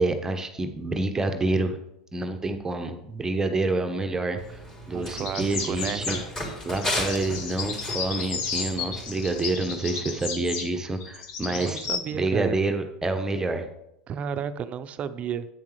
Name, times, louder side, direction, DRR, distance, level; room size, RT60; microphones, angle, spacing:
voice 1, 0.0-1.8 2.1-4.6 4.9-6.2 6.6-11.8 12.1-13.7, right 2 dB, 15° right, 6 dB, 1.0 m, -27 dB
Run, 4.4-9.5, equal, 20° left, 3.8 m, -35 dB
voice 2, 4.9-6.1 11.4-12.6 14.1-15.5, right 8 dB, 35° right, 12 dB, 0.7 m, -32 dB
sound 1, 5.2-6.3 6.7-12.0, left 5 dB, 60° left, 1.8 m, -33 dB
10.5 x 8.4 x 3.3 m, 0.84 s
hypercardioid pair, 90°, 4 cm